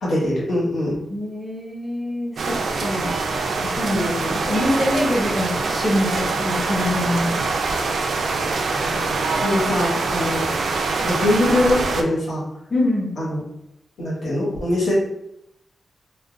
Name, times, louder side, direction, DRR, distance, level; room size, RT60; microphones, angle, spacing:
voice 1, 0.0-0.9 3.9-4.3 8.5-9.0 9.4-10.5 11.0-12.4 13.2-13.4 14.0-14.9, left 1 dB, 80° left, -6 dB, 1.1 m, -23 dB
voice 2, 1.1-3.1 3.6-7.4 9.5-9.6 12.7-13.1, left 1 dB, 10° left, -2 dB, 0.5 m, -24 dB
sound 1, 2.4-12.0, right 3 dB, 70° right, 0.3 m, -24 dB
2.4 x 2.1 x 3.8 m, 0.79 s
wide cardioid pair, 145°, 0 cm